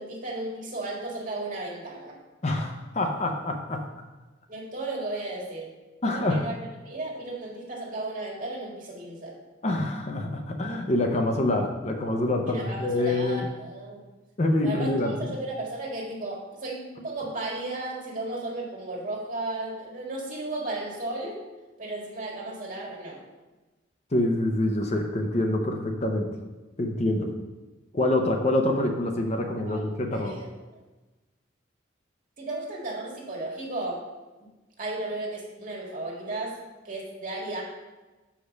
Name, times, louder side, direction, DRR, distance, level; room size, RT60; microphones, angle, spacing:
voice 1, 0.0-2.2 4.5-5.7 6.0-6.5 6.8-9.3 12.5-14.1 14.6-21.5 21.8-23.2 29.7-29.8 30.1-30.5 32.4-34.0 34.4-34.5 34.8-36.6 36.8-37.6, right 2 dB, 45° right, -3 dB, 1.8 m, -34 dB
voice 2, 2.4-3.8 6.0-6.4 9.6-13.5 14.4-15.3 24.1-26.3 26.8-27.3 27.9-30.4, left 1 dB, 35° left, 3 dB, 0.7 m, -26 dB
6.7 x 5.0 x 5.2 m, 1.2 s
head